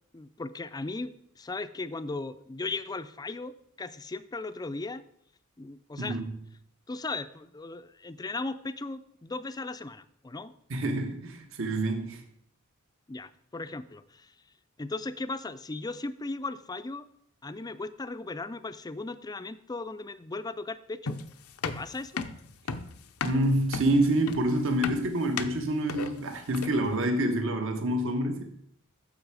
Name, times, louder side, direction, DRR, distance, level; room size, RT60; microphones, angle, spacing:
voice 1, 0.1-5.0 5.6-6.2 6.9-10.5 13.1-14.3 14.8-17.0 17.4-21.2 21.6-22.2, left 3 dB, 20° left, 12 dB, 0.4 m, -37 dB
voice 2, 6.0-6.4 10.7-12.2 23.2-28.4, right 1 dB, 65° right, 5 dB, 1.3 m, -27 dB
sound 1, 21.1-26.9, left 5 dB, 85° left, 0.7 m, -35 dB
10.0 x 7.0 x 4.8 m, 0.69 s
head